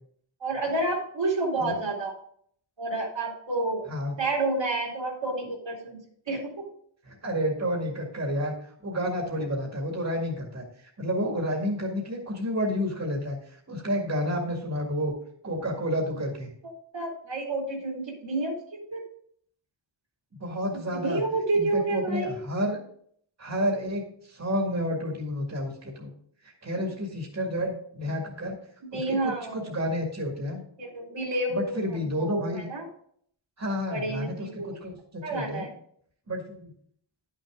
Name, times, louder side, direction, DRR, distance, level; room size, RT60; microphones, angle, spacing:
voice 1, 0.4-2.1 2.8-3.8 4.2-6.7 16.6-19.0 20.7-22.4 26.8-26.9 28.9-29.7 30.8-32.9 33.9-34.7 35.2-35.7, right 2 dB, 65° right, 0 dB, 2.6 m, -30 dB
voice 2, 7.0-15.1 15.4-16.5 20.4-21.2 21.5-22.8 23.4-26.1 26.4-28.6 28.9-30.6 31.5-32.7 33.6-35.7 36.3-36.7, equal, 35° right, 0 dB, 2.0 m, -30 dB
10.5 x 6.4 x 3.7 m, 0.63 s
wide cardioid pair, 85°, 47 cm